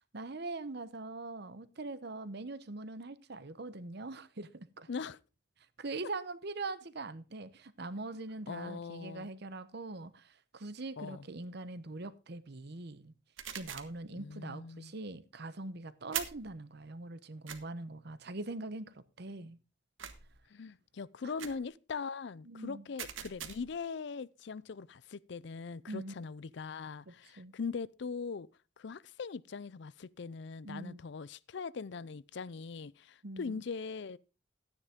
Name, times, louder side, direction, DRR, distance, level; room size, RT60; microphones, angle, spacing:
voice 1, 0.1-4.9 5.8-13.1 13.5-19.6 21.2-21.4 22.5-22.9 25.9-26.1 27.1-27.5 30.6-31.0 33.2-33.6, right 2 dB, 55° right, 0.9 m, -42 dB
voice 2, 4.9-5.2 8.5-9.3 11.0-11.2 14.1-14.9 20.5-28.5 28.8-34.2, left 5 dB, 60° left, 0.5 m, -41 dB
sound 1, 13.4-14.0 16.1-16.5 17.5-17.6 20.0-20.4 21.4-21.7 23.0-23.8, right 9 dB, 80° right, 1.4 m, -41 dB
13.0 x 9.8 x 3.7 m
head